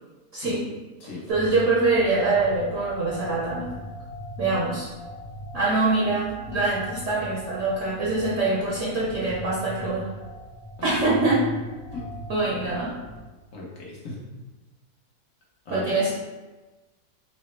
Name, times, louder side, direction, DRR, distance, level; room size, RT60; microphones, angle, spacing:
voice 1, 0.3-0.6 1.3-3.7 4.4-4.9 5.5-10.1 10.8-11.5 12.3-13.0 15.7-16.1, right 3 dB, 60° right, -6 dB, 0.9 m, -24 dB
voice 2, 1.0-1.3 10.8-11.0 11.9-12.1 13.5-14.2 15.6-16.0, left 3 dB, 60° left, -4 dB, 1.1 m, -38 dB
sound 1, 1.3-13.2, left 1 dB, 85° left, 1.3 m, -40 dB
4.0 x 2.0 x 3.1 m, 1.2 s
omnidirectional pair, 1.7 m